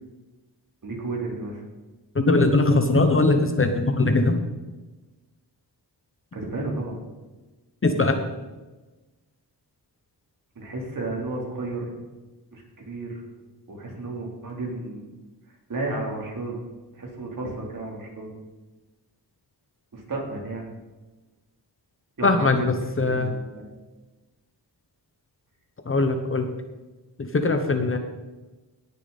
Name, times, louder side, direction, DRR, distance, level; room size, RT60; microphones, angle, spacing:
voice 1, 0.8-1.6 6.3-7.0 10.5-11.9 12.5-13.2 13.7-15.1 15.7-16.6 16.9-18.3 19.9-20.7 22.2-22.7 23.0-23.7, right 2 dB, 50° right, -1 dB, 3.3 m, -32 dB
voice 2, 2.1-4.4 7.8-8.2 22.2-23.3 25.9-26.5 27.2-28.0, left 2 dB, 30° left, 6 dB, 0.9 m, -21 dB
18.5 x 6.9 x 4.1 m, 1.2 s
wide cardioid pair, 125°, 42 cm